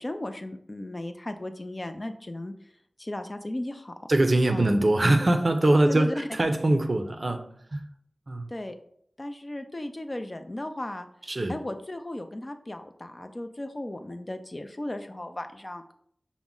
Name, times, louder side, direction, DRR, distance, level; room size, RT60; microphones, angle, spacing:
voice 1, 0.0-2.5 3.0-3.9 4.5-4.7 5.8-6.3 8.5-8.8 9.2-11.1 11.5-15.9, left 1 dB, 35° left, 0.4 m, -35 dB
voice 2, 4.1-7.9 8.3-8.5 11.3-11.5, right 1 dB, 50° right, 0.5 m, -23 dB
5.8 x 2.1 x 3.7 m
wide cardioid pair, 55°, 0 cm